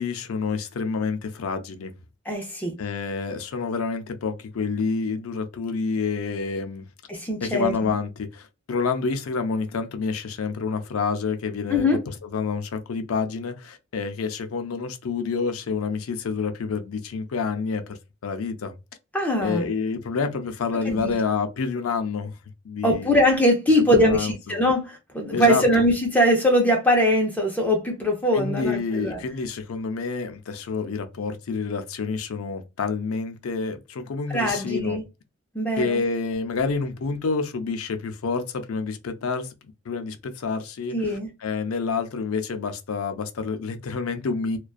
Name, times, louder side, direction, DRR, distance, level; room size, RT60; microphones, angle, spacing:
voice 1, 0.0-1.9 2.8-6.9 7.4-18.0 18.2-18.7 19.4-22.3 22.6-23.1 23.9-24.6 25.3-25.9 28.3-35.0 35.8-39.5 39.9-44.6, left 4 dB, 85° left, 0.5 m, -28 dB
voice 2, 2.3-2.7 7.1-7.9 11.7-12.0 19.1-19.6 20.8-21.1 22.8-29.2 34.3-35.0 35.5-36.0 40.9-41.3, equal, 5° left, 0.5 m, -22 dB
2.4 x 2.2 x 2.3 m
head